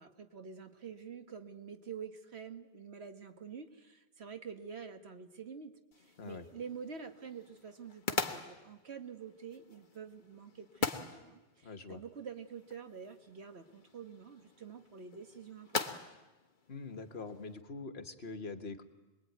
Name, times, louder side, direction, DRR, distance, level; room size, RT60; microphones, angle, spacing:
voice 1, 0.0-16.1, right 6 dB, 80° right, 7 dB, 1.7 m, -47 dB
sound 1, 5.9-17.6, left 4 dB, 50° left, 1.5 m, -42 dB
voice 2, 11.6-12.0 16.7-18.8, left 3 dB, 70° left, 7 dB, 1.7 m, -44 dB
26.0 x 21.5 x 9.3 m, 1.1 s
omnidirectional pair, 1.1 m